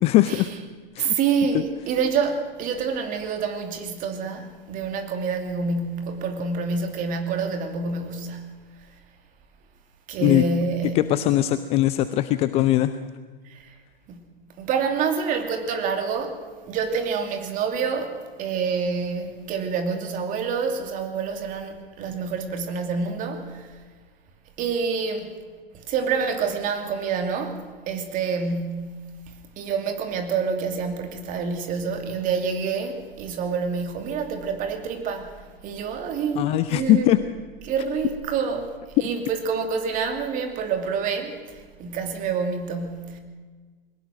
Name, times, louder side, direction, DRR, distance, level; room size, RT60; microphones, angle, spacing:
voice 1, 0.0-0.5 1.0-1.2 10.2-10.4 11.0-12.9 36.4-37.2, left 15 dB, 20° left, 0.5 m, -20 dB
voice 2, 1.0-8.4 10.1-11.0 13.4-13.7 14.1-14.3 14.6-16.4 16.7-23.7 24.6-25.3 25.7-29.0 29.6-35.4 35.6-37.2 37.7-38.7 39.0-43.2, right 5 dB, 25° right, 2.7 m, -27 dB
22.0 x 19.0 x 6.3 m
figure-of-eight pair, 115°, 29 cm